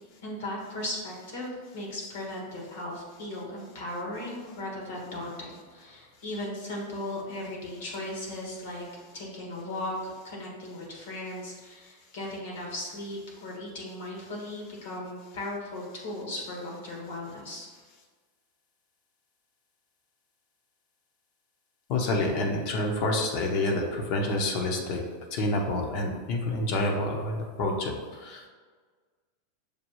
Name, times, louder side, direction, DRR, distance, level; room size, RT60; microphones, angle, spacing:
voice 1, 0.2-8.8 9.1-17.7, left 1 dB, 75° left, -2 dB, 1.5 m, -37 dB
voice 2, 21.9-25.0 25.3-27.9 28.2-28.4, left 2 dB, 55° left, 1 dB, 0.8 m, -28 dB
6.6 x 2.3 x 3.0 m, 1.5 s
hypercardioid pair, 125°, 0 cm